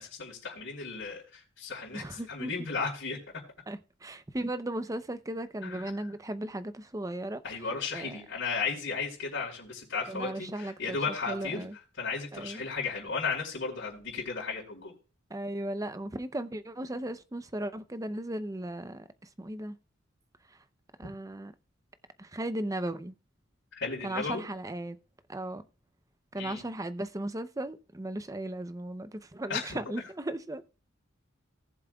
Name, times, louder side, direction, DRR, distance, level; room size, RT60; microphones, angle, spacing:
voice 1, 0.0-3.4 5.6-6.1 7.4-14.9 23.7-24.4 26.4-26.6 29.5-29.8, left 4 dB, 60° left, 4.1 m, -35 dB
voice 2, 1.9-2.5 3.7-7.4 7.9-8.2 10.1-11.0 11.3-11.7 12.3-12.6 15.3-19.1 19.4-19.8 21.0-21.5 22.2-23.1 24.0-25.0 25.3-25.6 26.3-30.6, right 1 dB, 15° right, 0.6 m, -36 dB
18.0 x 7.4 x 2.3 m
head